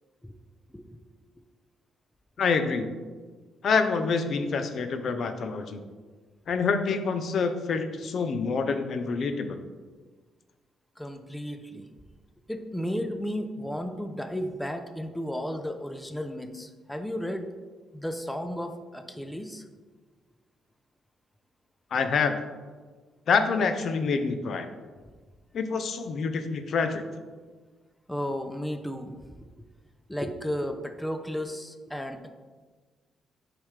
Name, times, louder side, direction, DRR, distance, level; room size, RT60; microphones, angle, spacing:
voice 1, 2.4-2.9 3.6-5.8 6.5-9.6 21.9-22.4 23.3-24.7 25.5-27.0, left 5 dB, 60° left, 8 dB, 0.5 m, -26 dB
voice 2, 11.0-11.9 12.5-17.5 17.9-19.6 28.1-29.2 30.1-32.3, equal, 5° left, 7 dB, 0.5 m, -33 dB
7.1 x 4.9 x 3.2 m, 1.4 s
cardioid pair, 90°, 0 cm